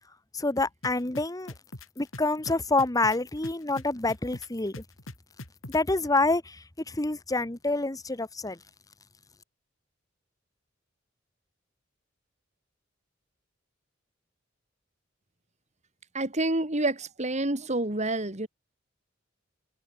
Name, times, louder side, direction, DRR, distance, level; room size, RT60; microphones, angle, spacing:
voice 1, 0.3-1.5 2.0-4.8 5.7-6.6 6.9-8.6, left 2 dB, 20° left, 1.2 m, -27 dB
sound 1, 0.8-5.9, left 2 dB, 85° left, 3.1 m, -42 dB
voice 2, 16.1-18.5, right 2 dB, 35° right, 3.3 m, -28 dB
head